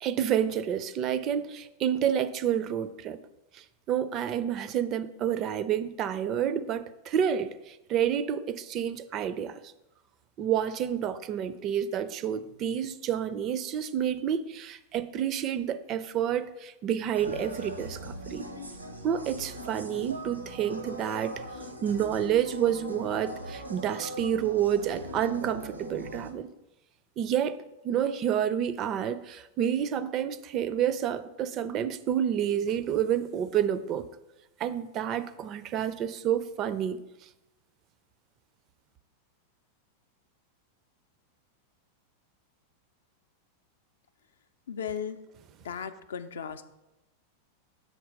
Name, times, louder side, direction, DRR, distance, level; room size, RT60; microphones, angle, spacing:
voice 1, 0.0-3.2 3.5-9.6 10.4-18.5 19.0-21.4 21.8-26.5 27.2-34.1 34.6-37.0, right 9 dB, 35° right, 0.4 m, -29 dB
sound 1, 17.1-26.3, right 1 dB, 85° right, 0.8 m, -40 dB
voice 2, 44.7-45.2 45.6-46.7, left 7 dB, 65° left, 0.4 m, -36 dB
6.5 x 4.3 x 5.0 m
figure-of-eight pair, 90°, 0 cm